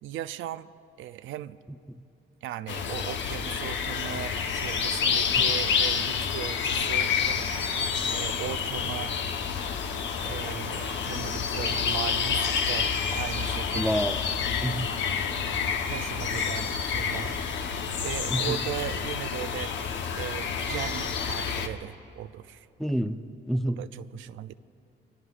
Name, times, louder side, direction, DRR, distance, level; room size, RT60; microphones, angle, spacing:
voice 1, 0.0-1.6 2.4-7.5 8.1-9.1 10.2-14.0 15.9-17.6 18.0-19.7 20.1-22.7 23.8-24.5, right 12 dB, 80° right, 12 dB, 0.5 m, -38 dB
sound 1, 2.7-21.7, left 6 dB, 70° left, 1.0 m, -28 dB
voice 2, 13.7-14.2 14.6-14.9 18.3-18.6 22.8-23.8, equal, ahead, 8 dB, 0.6 m, -28 dB
24.5 x 23.5 x 2.5 m, 2.6 s
cardioid pair, 90°, 20 cm